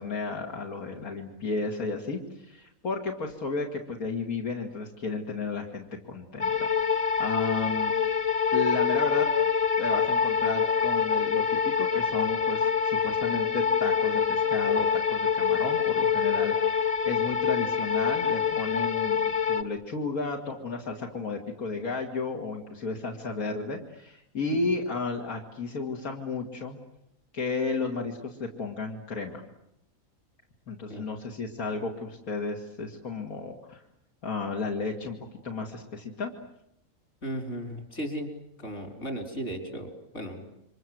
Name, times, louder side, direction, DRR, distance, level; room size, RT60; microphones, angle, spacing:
voice 1, 0.0-7.9 8.5-9.3 9.8-26.8 27.3-29.4 30.7-33.8 34.2-35.2 35.4-36.3, left 3 dB, 80° left, 0 dB, 2.8 m, -33 dB
sound 1, 6.4-19.6, left 6 dB, 25° left, 1.1 m, -25 dB
voice 2, 37.2-38.3 38.6-40.5, equal, 55° left, 4 dB, 5.1 m, -36 dB
29.5 x 25.0 x 7.8 m, 0.80 s
omnidirectional pair, 1.5 m